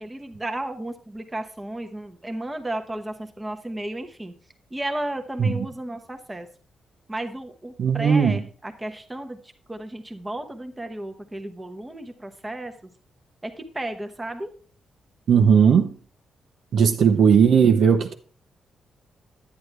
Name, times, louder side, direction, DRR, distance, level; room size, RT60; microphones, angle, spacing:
voice 1, 0.0-4.3 4.7-6.5 7.1-9.4 9.7-12.7 13.4-14.5, right 1 dB, 15° right, 1.0 m, -33 dB
voice 2, 7.8-8.4 15.3-15.9 16.7-18.1, right 7 dB, 65° right, 0.9 m, -17 dB
9.6 x 9.6 x 3.4 m
cardioid pair, 135°, 0 cm